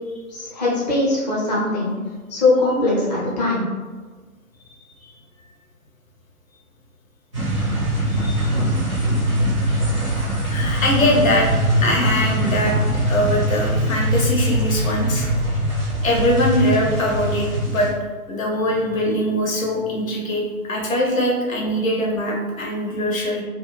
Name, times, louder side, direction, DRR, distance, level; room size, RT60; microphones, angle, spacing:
voice 1, 0.3-1.9 2.3-3.6, left 2 dB, 30° left, -6 dB, 0.7 m, -20 dB
sound 1, 7.3-17.9, right 1 dB, 20° right, 0.4 m, -22 dB
voice 2, 10.5-11.5 11.8-12.8 13.1-15.3 16.0-17.9 18.3-23.4, left 1 dB, 60° left, -2 dB, 0.8 m, -22 dB
2.5 x 2.2 x 3.1 m, 1.4 s
figure-of-eight pair, 135°, 45 cm